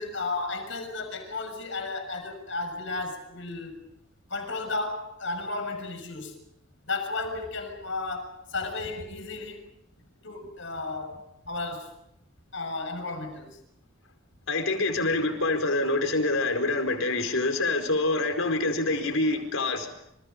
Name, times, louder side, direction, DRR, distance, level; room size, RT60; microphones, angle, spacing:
voice 1, 0.0-3.8 4.3-6.4 6.8-9.7 10.2-12.0 12.5-13.6, left 3 dB, 65° left, 7 dB, 6.7 m, -34 dB
voice 2, 14.5-19.9, left 2 dB, 85° left, 6 dB, 4.7 m, -26 dB
28.5 x 27.5 x 5.3 m, 0.77 s
head